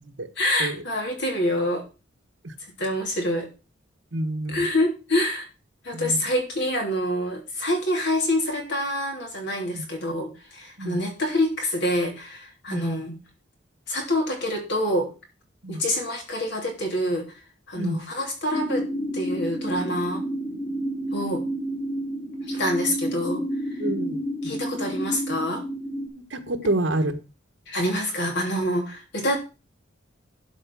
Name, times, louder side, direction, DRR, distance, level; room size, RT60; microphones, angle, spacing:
voice 1, 0.4-1.8 2.8-3.5 4.5-5.5 5.8-13.2 13.9-15.1 15.7-17.3 17.7-18.8 19.1-20.2 21.1-21.4 22.5-23.4 24.4-25.6 27.7-29.4, left 1 dB, 65° left, 3.2 m, -26 dB
voice 2, 4.1-4.7 5.9-6.2 9.7-9.8 10.8-11.0 12.7-12.8 15.6-15.8 17.7-18.0 23.8-24.2 26.3-27.2, right 1 dB, 70° right, 1.3 m, -28 dB
sound 1, 18.5-26.1, equal, 30° left, 3.3 m, -30 dB
12.0 x 4.9 x 6.1 m
head